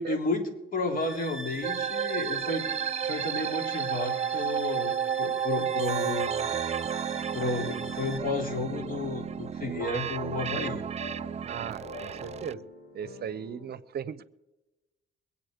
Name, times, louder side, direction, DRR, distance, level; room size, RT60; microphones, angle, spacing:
voice 1, 0.0-2.7 3.0-6.5 7.3-10.8, left 2 dB, 45° left, 3 dB, 3.3 m, -32 dB
sound 1, 1.0-8.2, right 2 dB, ahead, 1.7 m, -43 dB
sound 2, 1.6-12.5, right 8 dB, 35° right, 0.4 m, -32 dB
sound 3, 7.4-13.7, left 2 dB, 75° left, 3.9 m, -48 dB
voice 2, 11.5-12.6 12.9-14.2, right 8 dB, 55° right, 17 dB, 0.8 m, -37 dB
22.5 x 8.5 x 5.1 m, 1.0 s
cardioid pair, 90°, 20 cm